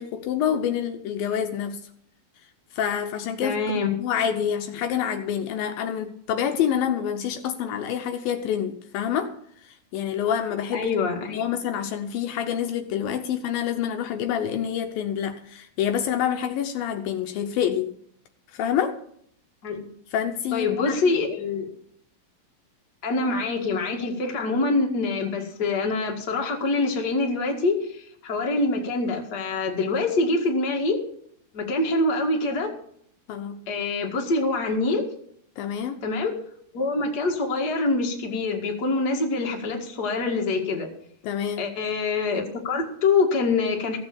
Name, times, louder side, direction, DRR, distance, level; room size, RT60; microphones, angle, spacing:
voice 1, 0.0-1.8 2.7-3.6 4.0-9.3 9.6-10.9 11.3-17.9 18.5-19.0 20.1-21.0 33.3-33.6 35.6-36.0 41.2-41.6, left 9 dB, 75° left, 7 dB, 2.4 m, -27 dB
voice 2, 3.4-4.0 10.7-11.4 19.6-19.8 20.5-21.7 23.0-31.0 31.5-32.7 33.7-35.1 36.0-36.3 36.7-40.9 41.6-44.0, left 3 dB, 35° left, 2 dB, 1.8 m, -25 dB
16.0 x 7.9 x 6.9 m, 0.67 s
omnidirectional pair, 4.4 m